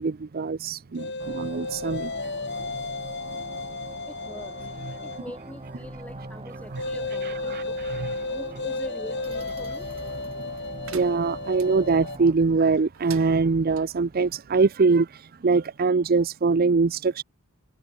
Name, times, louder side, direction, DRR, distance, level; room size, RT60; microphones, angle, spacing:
voice 1, 0.0-2.1 7.5-7.6 7.9-8.1 10.4-10.5 10.8-17.2, right 4 dB, 45° right, 0.5 m, -23 dB
sound 1, 1.0-5.3 6.8-12.2, left 3 dB, 55° left, 5.6 m, -33 dB
sound 2, 1.2-12.3, right 2 dB, 30° right, 3.2 m, -42 dB
voice 2, 4.1-4.7 5.0-7.9 8.3-9.9, equal, 5° left, 7.0 m, -43 dB
sound 3, 10.8-11.7 12.9-13.9, right 10 dB, 85° right, 4.1 m, -45 dB
head